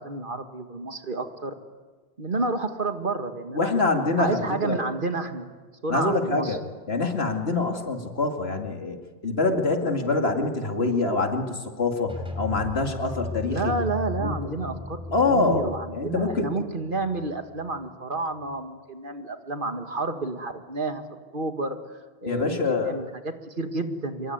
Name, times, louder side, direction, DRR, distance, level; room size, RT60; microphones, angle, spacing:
voice 1, 0.0-1.6 2.2-3.7 4.2-5.5 5.8-6.6 13.5-15.0 15.2-21.0 21.3-21.8 22.2-24.3, right 3 dB, 55° right, 7 dB, 2.2 m, -30 dB
voice 2, 3.5-4.8 5.9-6.6 6.9-9.0 9.2-13.7 14.2-14.5 15.1-15.6 15.9-16.5 22.3-22.9, left 3 dB, 75° left, 4 dB, 2.7 m, -25 dB
sound 1, 12.1-17.8, left 3 dB, 5° right, 4.0 m, -36 dB
26.0 x 23.5 x 9.6 m, 1.4 s
omnidirectional pair, 1.1 m